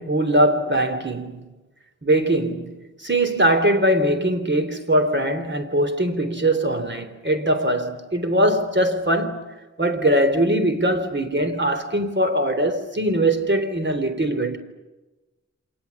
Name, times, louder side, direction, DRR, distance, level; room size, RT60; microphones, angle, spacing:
voice 1, 0.0-1.5 2.0-9.5 9.8-14.6, right 1 dB, 40° right, 3.6 m, -21 dB
30.0 x 26.5 x 7.3 m
wide cardioid pair, 60°, 30 cm